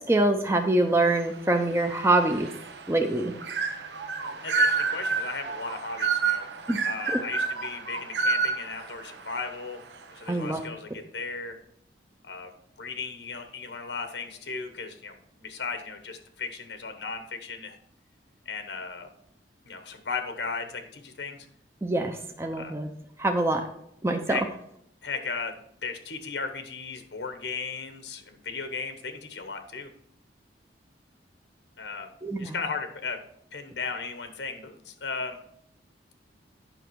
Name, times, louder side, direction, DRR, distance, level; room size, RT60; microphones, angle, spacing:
voice 1, 0.1-2.5 2.9-3.3 6.7-6.8 10.3-10.6 21.8-22.9 23.2-23.6 24.0-24.4 32.2-32.5, right 2 dB, 15° right, 4 dB, 0.6 m, -24 dB
sound 1, 1.1-10.0, right 4 dB, 85° right, 0.8 m, -30 dB
voice 2, 4.2-6.5 6.8-9.8 10.1-11.6 12.2-12.5 12.8-17.8 18.4-19.1 19.6-21.5 22.5-22.8 24.3-24.4 25.0-29.9 31.8-32.1 32.4-33.2 33.5-35.4, left 4 dB, 85° left, 7 dB, 1.1 m, -36 dB
9.0 x 5.9 x 4.6 m, 0.71 s
head